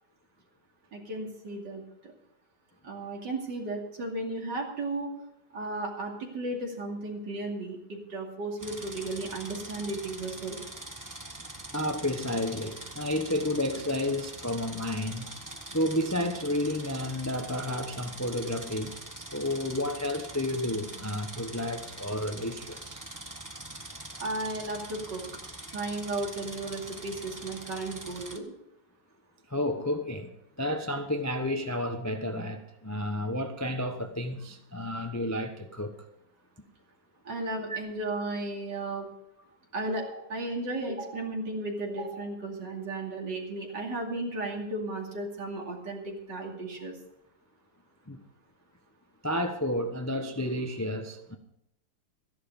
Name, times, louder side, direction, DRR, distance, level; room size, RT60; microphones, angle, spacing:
voice 1, 0.9-2.1 2.8-5.1 5.5-10.6 24.2-25.2 25.7-28.5 37.2-39.1 39.7-47.0, right 2 dB, 65° right, 3.2 m, -34 dB
sound 1, 8.6-28.4, right 1 dB, 15° right, 0.9 m, -43 dB
voice 2, 11.7-15.3 15.7-18.9 19.3-23.0 29.5-30.3 30.6-35.9 37.7-37.8 48.1-48.2 49.2-51.4, left 1 dB, 20° left, 0.5 m, -31 dB
14.5 x 11.0 x 5.3 m
omnidirectional pair, 2.1 m